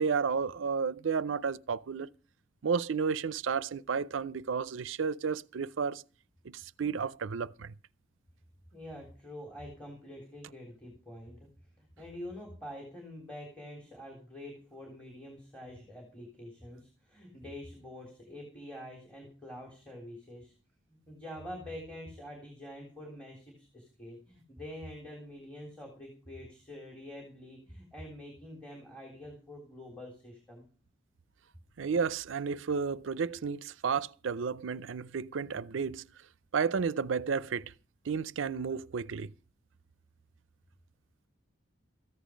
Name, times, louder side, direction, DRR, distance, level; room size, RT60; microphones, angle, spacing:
voice 1, 0.0-2.1 2.6-6.0 6.4-7.7 31.8-36.1 36.5-37.7 38.1-39.3, right 5 dB, 90° right, 0.5 m, -32 dB
voice 2, 8.7-11.5 11.8-20.5 20.9-30.6, left 1 dB, 5° left, 3.6 m, -46 dB
14.5 x 10.0 x 5.1 m
head